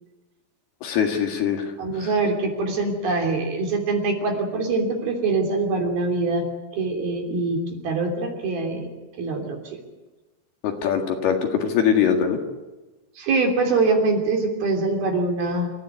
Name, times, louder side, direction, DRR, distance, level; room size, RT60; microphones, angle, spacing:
voice 1, 0.8-1.6 10.6-12.4, left 8 dB, 65° left, 4 dB, 3.7 m, -22 dB
voice 2, 1.8-6.4 6.7-8.9 9.2-9.8 13.2-15.7, right 3 dB, 55° right, 2 dB, 4.9 m, -24 dB
27.5 x 15.0 x 9.4 m, 1.2 s
omnidirectional pair, 5.2 m